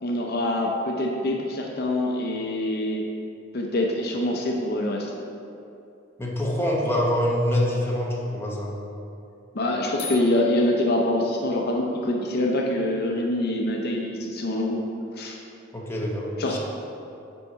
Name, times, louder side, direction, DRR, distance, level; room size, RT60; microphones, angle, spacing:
voice 1, 0.0-3.0 3.5-5.1 9.5-14.8 15.2-15.4 16.4-16.6, left 1 dB, 55° left, 0 dB, 0.6 m, -25 dB
voice 2, 6.2-8.7 15.7-16.6, equal, 10° left, -3 dB, 0.9 m, -25 dB
sound 1, 10.0-11.6, left 5 dB, 75° left, 1.2 m, -40 dB
5.4 x 4.6 x 5.6 m, 2.7 s
head